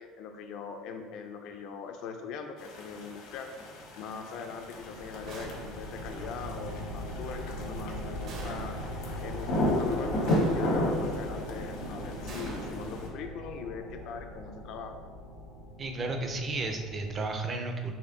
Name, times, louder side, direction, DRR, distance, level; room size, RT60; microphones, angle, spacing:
voice 1, 0.0-3.5 4.0-8.8 9.2-15.0, left 6 dB, 60° left, 5 dB, 0.4 m, -41 dB
sound 1, 2.6-13.1, left 1 dB, 80° left, 1.0 m, -33 dB
sound 2, 4.5-17.3, equal, 85° right, 1.3 m, -41 dB
sound 3, 5.3-6.0 8.3-9.1 10.3-11.0 12.3-13.5, right 1 dB, 50° right, 0.9 m, -44 dB
voice 2, 15.8-17.9, right 3 dB, 25° right, 4 dB, 0.5 m, -33 dB
4.3 x 3.0 x 3.8 m, 1.5 s
cardioid pair, 150°, 0 cm